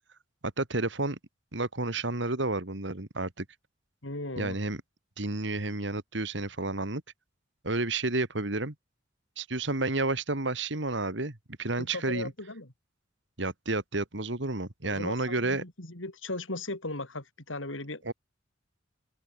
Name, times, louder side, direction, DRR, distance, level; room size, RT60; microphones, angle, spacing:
voice 1, 0.4-1.2 1.5-3.5 4.4-4.8 5.2-7.0 7.6-8.7 9.4-12.3 13.4-15.6 18.0-18.1, right 2 dB, 65° right, 2.3 m, -31 dB
voice 2, 4.0-4.6 11.8-12.7 14.8-18.1, left 2 dB, 80° left, 4.6 m, -37 dB
open air
head